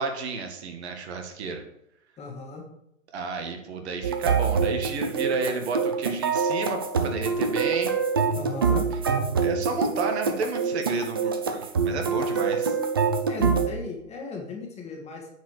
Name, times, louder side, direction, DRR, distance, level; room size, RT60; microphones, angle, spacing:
voice 1, 0.0-1.6 3.1-7.9 9.4-12.8, right 4 dB, 50° right, 4 dB, 1.9 m, -31 dB
voice 2, 2.2-2.7 8.3-8.9 13.3-15.3, left 4 dB, 15° left, 1 dB, 1.8 m, -36 dB
sound 1, 4.0-13.7, right 5 dB, 20° right, 0.3 m, -25 dB
9.1 x 4.9 x 6.6 m, 0.80 s
hypercardioid pair, 130°, 40 cm